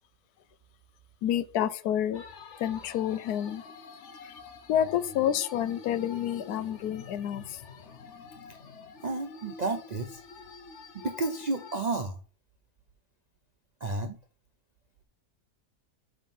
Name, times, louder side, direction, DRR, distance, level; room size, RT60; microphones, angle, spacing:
voice 1, 1.2-2.2 2.6-3.6 4.7-7.6, left 10 dB, 80° left, 1.1 m, -29 dB
sound 1, 2.1-11.8, left 4 dB, 55° left, 1.0 m, -47 dB
voice 2, 9.0-10.2 11.0-12.2 13.8-14.2, right 3 dB, 70° right, 0.4 m, -31 dB
7.2 x 3.8 x 5.4 m
omnidirectional pair, 1.6 m